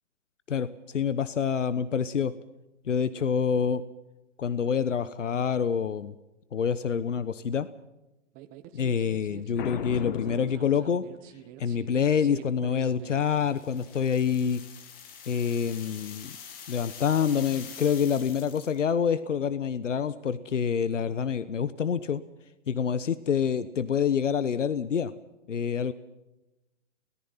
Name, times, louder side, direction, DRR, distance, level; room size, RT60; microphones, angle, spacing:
voice 1, 0.5-2.3 2.9-3.8 4.4-6.1 6.5-7.7 8.7-11.0 11.6-14.6 15.3-16.3 16.7-22.2 22.7-25.1 25.5-25.9, left 7 dB, 85° left, 15 dB, 1.1 m, -27 dB
sound 1, 8.3-13.5, right 12 dB, 25° right, 1.1 m, -46 dB
Boom, 9.6-11.4, left 10 dB, 40° left, 1.3 m, -37 dB
sound 2, 13.3-18.9, left 7 dB, 25° left, 2.4 m, -45 dB
25.5 x 18.5 x 5.8 m, 0.98 s
hypercardioid pair, 140°, 36 cm